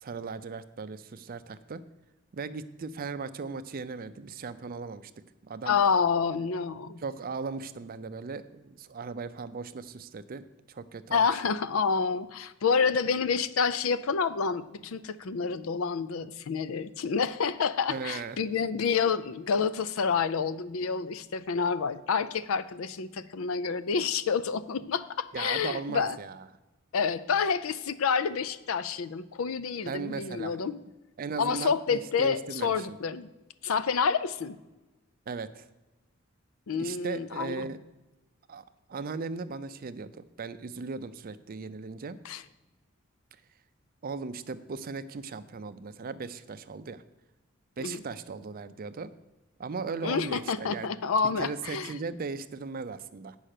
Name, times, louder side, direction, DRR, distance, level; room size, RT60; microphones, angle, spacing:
voice 1, 0.0-1.8 2.3-5.1 5.4-5.8 7.0-10.4 10.7-11.3 17.9-18.4 25.3-26.4 29.8-30.6 31.2-33.0 35.3-35.7 36.8-37.8 38.5-38.6 38.9-42.2 44.0-47.0 47.8-49.1 49.6-50.9 51.4-53.4, right 4 dB, 45° right, 12 dB, 0.4 m, -37 dB
voice 2, 5.7-7.0 11.1-26.2 26.9-30.8 31.4-33.3 33.6-34.6 36.7-37.7 42.2-42.4 47.8-48.0 50.0-51.9, left 5 dB, 70° left, 15 dB, 0.5 m, -28 dB
8.7 x 5.5 x 6.5 m, 1.1 s
head